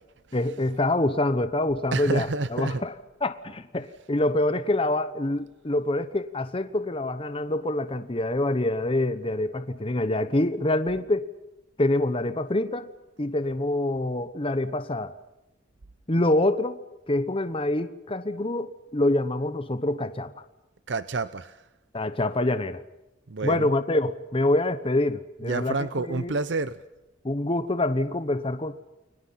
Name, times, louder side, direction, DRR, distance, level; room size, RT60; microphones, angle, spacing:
voice 1, 0.3-2.9 3.2-11.3 11.8-12.9 13.2-15.1 16.1-16.8 17.1-20.4 21.9-22.8 23.4-26.3 27.2-28.8, left 1 dB, 30° left, 1.1 m, -26 dB
voice 2, 1.9-2.8 20.9-21.7 23.3-23.7 25.4-26.8, right 3 dB, 65° right, 0.8 m, -29 dB
30.0 x 23.0 x 5.8 m
head